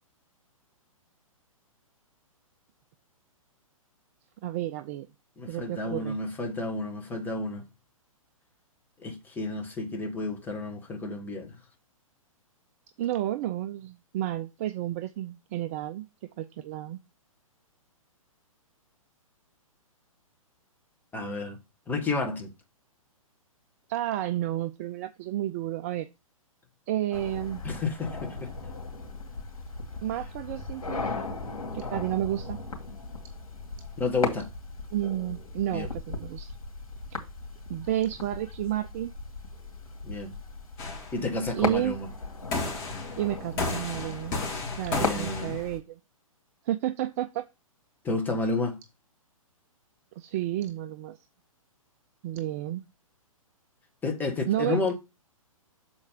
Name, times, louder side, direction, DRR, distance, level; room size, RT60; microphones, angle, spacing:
voice 1, 4.4-5.1 5.5-6.2 13.0-16.1 16.4-17.0 23.9-26.1 26.9-27.6 30.0-31.3 31.7-32.6 34.9-36.6 37.7-39.1 41.5-42.0 43.2-44.3 44.8-46.0 46.7-47.4 50.2-51.2 52.2-52.8 54.5-54.9, right 13 dB, 25° right, 0.3 m, -31 dB
voice 2, 5.4-7.6 9.0-11.5 21.1-21.6 21.9-22.5 27.6-28.5 34.0-34.5 35.7-35.9 40.0-40.3 41.1-42.1 44.9-45.6 48.0-48.8 54.0-54.9, left 3 dB, 10° left, 1.2 m, -31 dB
sound 1, 27.1-45.8, left 3 dB, 75° left, 2.6 m, -37 dB
sound 2, 40.8-41.3 42.5-43.3 43.6-45.6, left 3 dB, 30° left, 2.2 m, -32 dB
7.0 x 4.3 x 4.9 m
figure-of-eight pair, 120°, 18 cm